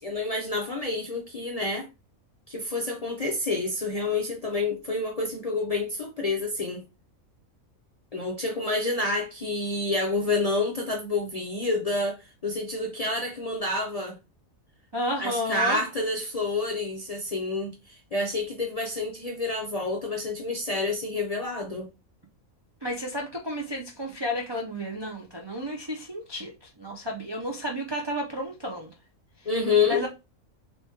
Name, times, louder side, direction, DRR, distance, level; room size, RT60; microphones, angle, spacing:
voice 1, 0.0-1.9 2.5-6.8 8.1-14.1 15.2-21.9 29.5-30.0, left 3 dB, 50° left, 0.4 m, -28 dB
voice 2, 14.9-15.8 22.8-26.5 26.8-28.9 29.9-30.1, equal, 45° right, 0.3 m, -31 dB
3.4 x 3.0 x 2.8 m
omnidirectional pair, 1.4 m